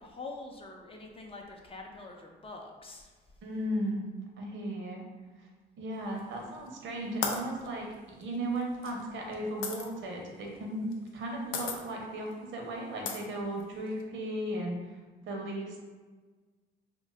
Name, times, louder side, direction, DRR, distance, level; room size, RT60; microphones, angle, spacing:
voice 1, 0.0-3.1, left 3 dB, 30° left, 1 dB, 0.4 m, -45 dB
voice 2, 3.4-4.1 4.4-5.0 5.4-5.5 5.8-7.9 8.2-14.8 15.2-15.8, right 1 dB, 75° right, 0 dB, 0.7 m, -36 dB
sound 1, 6.2-6.7 7.2-9.9 10.9-11.2 11.5-11.8 12.3-12.4 13.0-14.0, left 5 dB, 90° left, 0.4 m, -36 dB
2.6 x 2.2 x 3.3 m, 1.4 s
cardioid pair, 90°, 20 cm